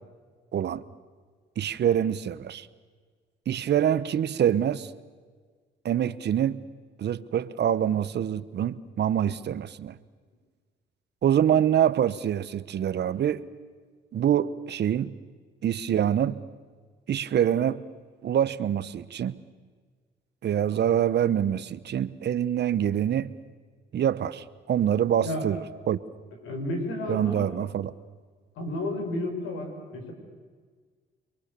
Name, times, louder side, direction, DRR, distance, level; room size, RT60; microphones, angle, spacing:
voice 1, 0.5-0.8 1.6-2.7 3.5-4.9 5.8-6.6 7.0-10.0 11.2-13.4 14.1-15.1 15.6-16.4 17.1-17.8 18.2-19.4 20.4-23.3 23.9-25.6 25.9-26.0 27.1-27.9, right 10 dB, 60° right, 16 dB, 1.0 m, -25 dB
voice 2, 26.4-27.4 28.6-30.1, left 1 dB, 85° left, 4 dB, 5.7 m, -31 dB
29.0 x 22.5 x 6.9 m, 1.6 s
cardioid pair, 90°, 20 cm